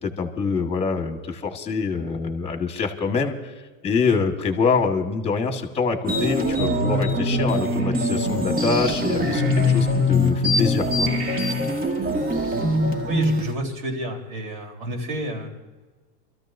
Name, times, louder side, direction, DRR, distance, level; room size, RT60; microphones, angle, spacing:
voice 1, 0.0-3.5 3.8-11.1, left 5 dB, 15° left, 5 dB, 1.5 m, -25 dB
sound 1, 6.0-13.5, left 1 dB, 25° right, 1.7 m, -22 dB
voice 2, 13.1-15.5, equal, 75° right, 0 dB, 3.9 m, -30 dB
27.5 x 14.0 x 2.7 m, 1.3 s
supercardioid pair, 130°, 35 cm